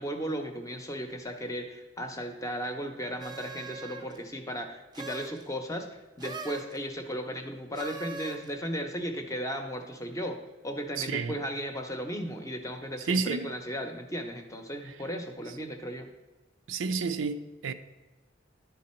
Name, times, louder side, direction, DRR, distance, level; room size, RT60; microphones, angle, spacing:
voice 1, 0.0-10.4 10.6-16.1, equal, 15° left, 0.6 m, -36 dB
sound 1, 3.2-4.2 4.9-5.4 6.2-6.8 7.7-8.5, right 4 dB, 20° right, 0.5 m, -41 dB
voice 2, 11.0-11.4 13.1-13.5 16.7-17.7, right 4 dB, 85° right, 0.5 m, -30 dB
10.5 x 3.9 x 4.3 m
head